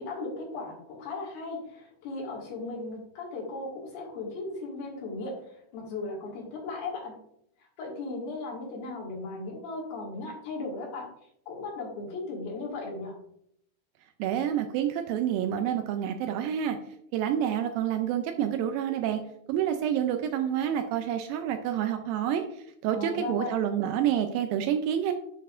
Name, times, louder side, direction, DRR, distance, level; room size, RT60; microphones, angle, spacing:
voice 1, 0.0-7.2 7.8-11.1 11.5-13.2 22.9-23.6, left 3 dB, 65° left, -3 dB, 3.7 m, -37 dB
voice 2, 14.2-16.8 17.1-19.2 19.5-25.1, right 10 dB, 85° right, 6 dB, 2.0 m, -28 dB
11.0 x 5.4 x 2.5 m, 0.71 s
omnidirectional pair, 4.6 m